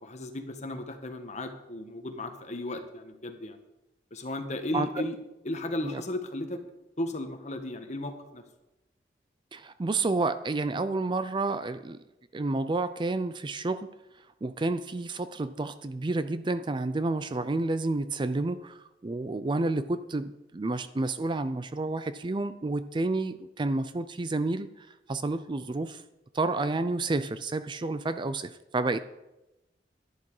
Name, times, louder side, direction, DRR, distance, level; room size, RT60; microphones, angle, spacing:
voice 1, 0.0-3.6 4.1-5.2 5.4-6.6 7.0-8.4, left 1 dB, 40° left, 6 dB, 1.4 m, -35 dB
voice 2, 9.5-12.0 12.3-13.9 14.4-26.0 26.3-29.0, right 2 dB, 25° right, 12 dB, 0.4 m, -30 dB
11.5 x 11.0 x 4.8 m, 0.96 s
head